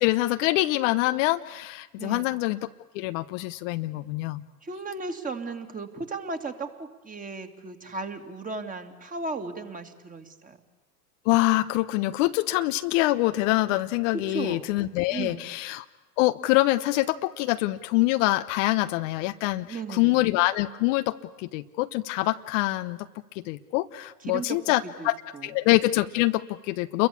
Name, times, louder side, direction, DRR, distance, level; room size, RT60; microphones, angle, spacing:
voice 1, 0.0-2.6 2.9-4.4 11.2-15.8 16.2-23.1 23.3-25.1 25.4-27.1, left 18 dB, 50° left, 10 dB, 1.1 m, -25 dB
voice 2, 2.0-2.4 4.6-10.6 14.1-14.7 15.1-15.5 19.6-20.2 24.3-25.5, right 3 dB, 15° right, 6 dB, 2.8 m, -36 dB
29.5 x 22.5 x 8.7 m, 1.1 s
hypercardioid pair, 95°, 48 cm